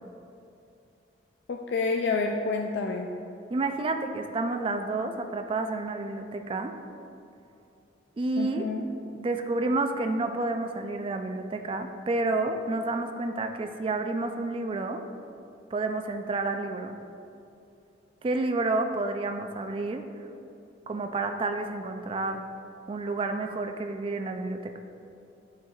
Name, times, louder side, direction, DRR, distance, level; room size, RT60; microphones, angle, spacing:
voice 1, 1.5-3.1 8.4-8.9, left 4 dB, 65° left, 3 dB, 0.3 m, -28 dB
voice 2, 3.5-6.7 8.2-8.7 9.2-15.0 15.7-17.0 18.2-20.3 20.9-22.4 22.9-24.8, right 2 dB, 30° right, 6 dB, 0.3 m, -30 dB
9.9 x 4.6 x 2.3 m, 2.7 s
head